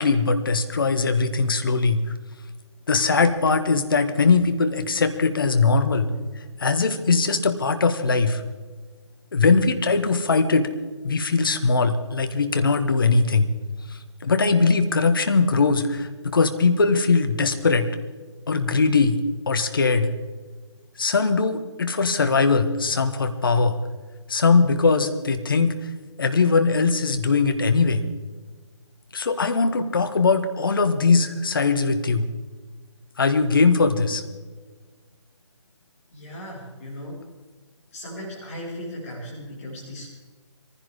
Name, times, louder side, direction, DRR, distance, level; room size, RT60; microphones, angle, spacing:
voice 1, 0.0-2.0 2.9-6.1 6.6-8.4 9.3-10.7 11.0-13.5 14.2-17.9 18.5-19.2 19.5-20.1 21.0-23.8 24.3-25.7 26.2-28.0 29.1-32.3 33.2-34.2, left 4 dB, 45° left, 8 dB, 1.5 m, -20 dB
voice 2, 36.1-37.2 37.9-40.1, equal, 30° left, -6 dB, 5.2 m, -37 dB
22.5 x 15.5 x 3.7 m, 1.4 s
figure-of-eight pair, 145°, 16 cm